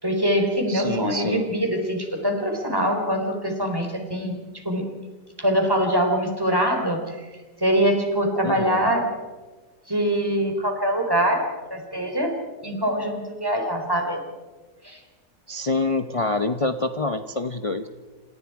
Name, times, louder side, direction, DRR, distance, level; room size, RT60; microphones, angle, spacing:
voice 1, 0.0-4.4 4.6-4.8 5.4-7.2 7.6-9.1 9.9-14.2 14.8-15.0, equal, 10° right, 3 dB, 4.0 m, -23 dB
voice 2, 0.7-1.5 8.4-8.8 15.5-17.9, left 3 dB, 35° left, 8 dB, 0.5 m, -26 dB
28.0 x 27.0 x 4.8 m, 1.3 s
omnidirectional pair, 2.0 m